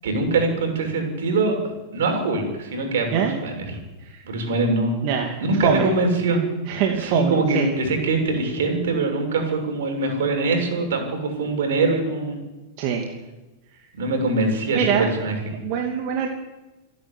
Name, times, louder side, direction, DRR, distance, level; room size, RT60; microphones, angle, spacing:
voice 1, 0.0-3.8 4.2-5.1 5.4-6.4 7.0-12.4 13.9-15.6, right 3 dB, 75° right, 3 dB, 6.9 m, -23 dB
voice 2, 5.0-5.9 6.7-7.7 12.8-13.1 14.7-15.1 15.6-16.3, right 7 dB, 50° right, 2 dB, 2.7 m, -23 dB
26.5 x 11.0 x 10.0 m, 1.1 s
hypercardioid pair, 120°, 0 cm